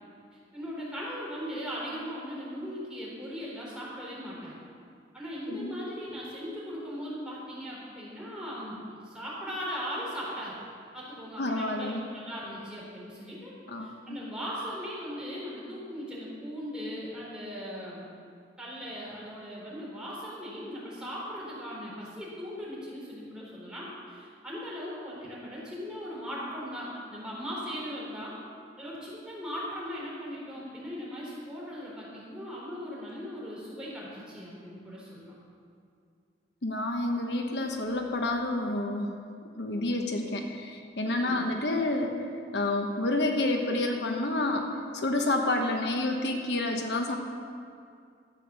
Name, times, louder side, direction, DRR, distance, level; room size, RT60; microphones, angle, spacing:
voice 1, 0.5-4.5 5.1-8.8 9.0-10.6 10.9-13.5 13.8-18.1 18.6-28.3 28.8-35.4 41.0-41.4, equal, 5° right, -7 dB, 3.9 m, -38 dB
voice 2, 11.4-12.0 13.7-14.2 36.6-39.1 39.6-42.2 42.5-47.2, left 2 dB, 75° left, 3 dB, 1.1 m, -29 dB
13.0 x 8.4 x 7.0 m, 2.3 s
head